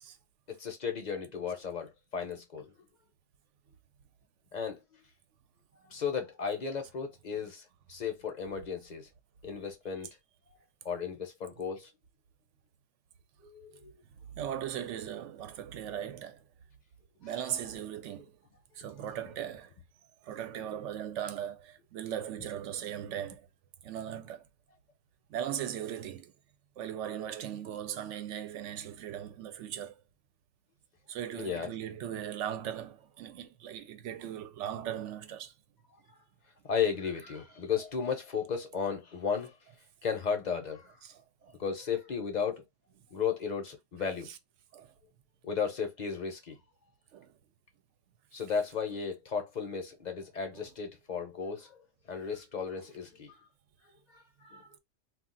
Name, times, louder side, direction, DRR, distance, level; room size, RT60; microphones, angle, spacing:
voice 1, 0.5-2.7 4.5-5.0 5.9-9.1 9.4-10.1 10.8-11.9 13.4-14.0 17.2-17.3 31.4-31.7 36.6-39.6 40.0-41.0 41.6-42.6 43.1-44.3 45.4-46.6 48.3-51.8 52.1-53.3 54.1-54.8, left 6 dB, 45° left, 0.7 m, -35 dB
voice 2, 14.3-16.4 17.2-18.4 18.7-19.7 20.2-23.5 23.8-24.5 25.3-26.3 26.8-30.0 31.1-35.5 41.0-41.6 44.3-44.4 44.7-44.9 47.1-47.3, right 10 dB, 75° right, 0.9 m, -38 dB
2.4 x 2.3 x 3.7 m
omnidirectional pair, 1.3 m